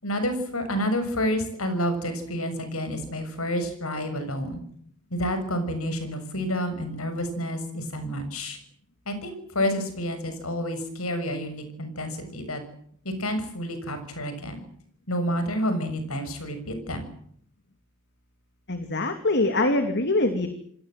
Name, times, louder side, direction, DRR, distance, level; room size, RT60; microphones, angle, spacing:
voice 1, 0.0-4.6 5.1-8.6 9.0-12.6 13.0-14.6 15.1-17.0, equal, 90° left, 8 dB, 6.6 m, -29 dB
voice 2, 18.7-20.5, left 2 dB, 55° left, 7 dB, 2.8 m, -23 dB
28.5 x 21.0 x 7.7 m, 0.66 s
head